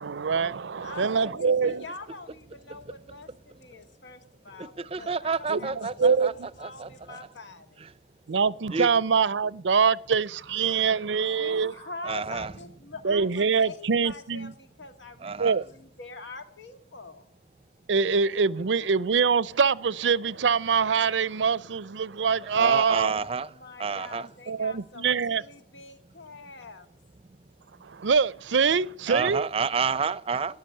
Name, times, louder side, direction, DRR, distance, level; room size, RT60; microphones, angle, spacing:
voice 1, 0.0-1.9 5.5-6.3 8.3-11.8 13.0-14.5 15.4-15.6 17.9-23.2 24.5-25.4 27.8-29.4, right 5 dB, 85° right, 0.6 m, -24 dB
voice 2, 1.3-7.8 11.4-17.3 23.0-26.9, left 3 dB, 85° left, 2.1 m, -44 dB
voice 3, 4.6-6.3 6.6-7.3 7.8-7.9 8.7-8.9 12.0-12.5 15.2-15.6 22.4-23.5 23.8-24.3 29.1-30.6, right 5 dB, 30° right, 0.5 m, -30 dB
13.0 x 10.5 x 8.7 m
head